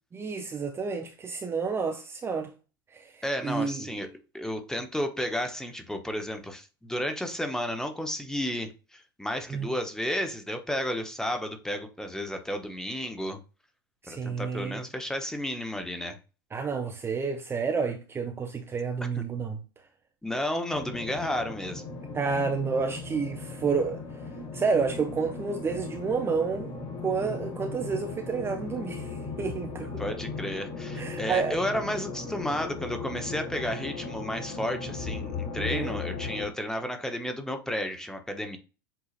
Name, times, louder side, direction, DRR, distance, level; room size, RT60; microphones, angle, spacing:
voice 1, 0.1-2.5 2.9-3.9 9.5-9.7 14.0-14.8 16.5-19.6 22.1-24.0 24.5-30.0 30.9-31.6 35.6-36.0, right 5 dB, 20° right, 0.7 m, -30 dB
voice 2, 3.2-4.1 4.3-13.4 14.1-16.2 19.1-19.2 20.2-21.8 30.0-38.6, equal, 5° left, 0.9 m, -32 dB
sound 1, 20.7-36.5, left 4 dB, 40° left, 1.4 m, -37 dB
7.8 x 2.8 x 2.5 m
hypercardioid pair, 90°, 12 cm